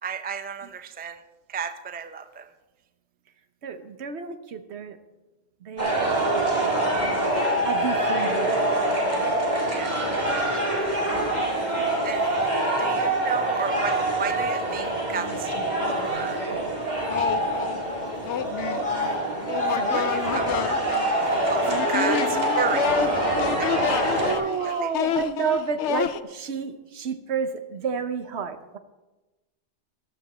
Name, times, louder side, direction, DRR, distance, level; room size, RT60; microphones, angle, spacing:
voice 1, 0.0-2.5 9.7-9.9 10.5-11.1 11.5-11.7 12.0-12.4 12.8-15.5 16.0-16.5 19.9-23.2 23.6-24.9, right 6 dB, 15° right, 10 dB, 0.3 m, -34 dB
voice 2, 3.6-5.0 5.6-6.3 7.6-8.7 19.8-20.1 24.2-28.8, right 6 dB, 70° right, 10 dB, 1.1 m, -30 dB
sound 1, 5.8-24.4, right 1 dB, 40° right, 2.3 m, -25 dB
sound 2, 14.7-14.8 15.1-16.4 17.1-26.2, left 9 dB, 80° left, 0.9 m, -30 dB
14.0 x 12.5 x 4.2 m, 1.1 s
omnidirectional pair, 1.2 m